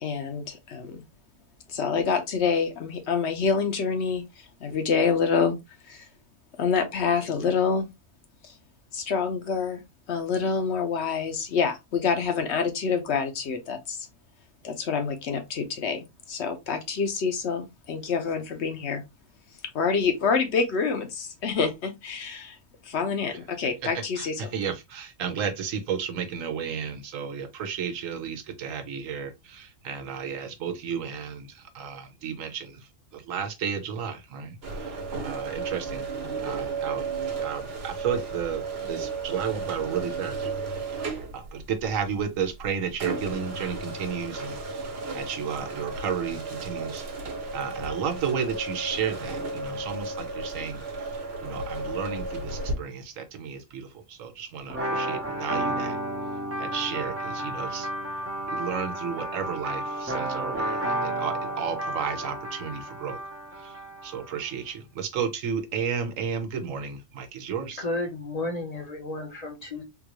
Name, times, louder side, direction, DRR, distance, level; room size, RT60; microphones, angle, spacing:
voice 1, 0.0-1.0 1.7-4.2 4.6-5.6 5.9-6.0 6.6-7.9 8.9-9.8 10.1-14.1 14.6-19.0 19.7-22.6 22.9-24.3, left 5 dB, 65° left, 0.9 m, -27 dB
voice 2, 24.2-36.1 36.4-38.6 38.9-40.5 40.8-51.2 51.4-56.0 56.6-57.9 58.5-63.2 63.5-67.8, right 7 dB, 85° right, 1.1 m, -33 dB
sound 1, 34.6-52.7, right 3 dB, 55° right, 1.1 m, -34 dB
sound 2, 54.7-64.3, right 1 dB, 15° right, 0.6 m, -31 dB
voice 3, 67.8-69.8, left 2 dB, 35° left, 0.8 m, -32 dB
3.7 x 2.5 x 2.9 m
omnidirectional pair, 1.3 m